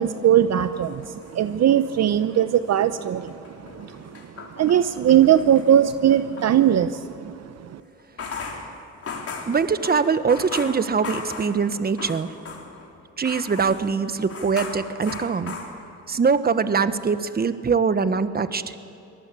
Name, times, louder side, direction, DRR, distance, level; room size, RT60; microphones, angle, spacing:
voice 1, 0.0-3.4 3.7-4.1 4.4-7.8, right 10 dB, 60° right, 11 dB, 0.9 m, -20 dB
sound 1, 0.8-2.0 2.4-6.5 8.0-12.9 13.2-16.2, left 4 dB, 50° left, 4.0 m, -37 dB
voice 2, 9.5-12.3 13.2-15.5 16.1-18.7, right 5 dB, 30° right, 12 dB, 1.2 m, -23 dB
24.5 x 19.0 x 8.4 m, 2.8 s
cardioid pair, 90°, 30 cm